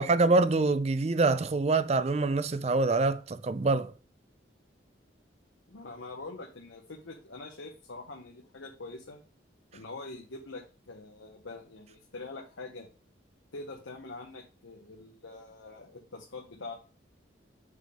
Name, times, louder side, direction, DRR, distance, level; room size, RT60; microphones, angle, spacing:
voice 1, 0.0-3.9, right 3 dB, 35° right, 0.4 m, -25 dB
voice 2, 5.7-9.2 9.7-12.9 13.5-16.8, left 3 dB, 90° left, 1.0 m, -44 dB
6.5 x 3.6 x 5.0 m
head